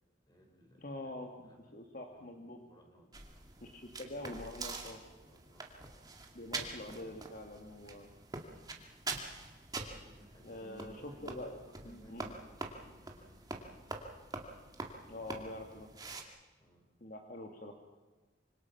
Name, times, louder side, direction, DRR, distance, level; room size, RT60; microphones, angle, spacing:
voice 1, 0.3-1.7 2.1-2.3 2.6-3.5 5.2-5.9 6.5-7.2 9.8-13.8 16.5-16.9, equal, 25° left, 2 dB, 5.2 m, -60 dB
voice 2, 0.8-1.3 1.7-2.6 3.6-5.0 6.3-8.1 10.4-11.5 11.9-12.3 15.1-15.9 17.0-17.7, left 1 dB, 50° left, 2 dB, 2.0 m, -45 dB
sound 1, 3.1-16.2, right 3 dB, 20° right, 2.2 m, -45 dB
26.0 x 25.5 x 5.9 m, 1.2 s
head